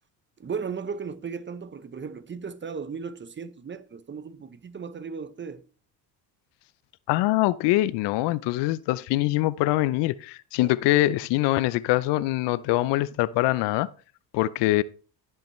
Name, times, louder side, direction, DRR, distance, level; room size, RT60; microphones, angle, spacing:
voice 1, 0.4-5.6 10.6-11.1, right 5 dB, 25° right, 0.8 m, -36 dB
voice 2, 7.1-13.9 14.3-14.8, left 17 dB, 65° left, 0.6 m, -23 dB
15.5 x 5.6 x 3.2 m
supercardioid pair, 75°, 45 cm